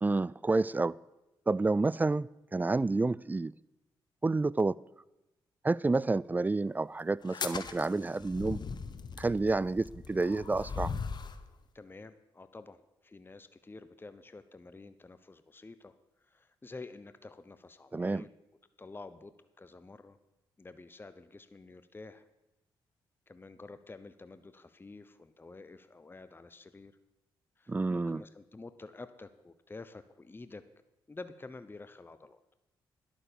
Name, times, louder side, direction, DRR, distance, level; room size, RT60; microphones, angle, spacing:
voice 1, 0.0-1.0 1.5-3.5 4.2-4.8 5.6-8.6 9.2-10.9 17.9-18.2 27.7-28.2, right 3 dB, 20° right, 0.3 m, -29 dB
sound 1, 7.2-11.4, left 5 dB, 50° left, 1.0 m, -39 dB
voice 2, 11.7-15.9 16.2-18.3 18.8-20.2 20.6-22.3 23.3-27.0 27.6-30.6 31.1-32.4, left 3 dB, 25° left, 0.8 m, -49 dB
11.0 x 8.8 x 6.8 m
supercardioid pair, 55°, 9 cm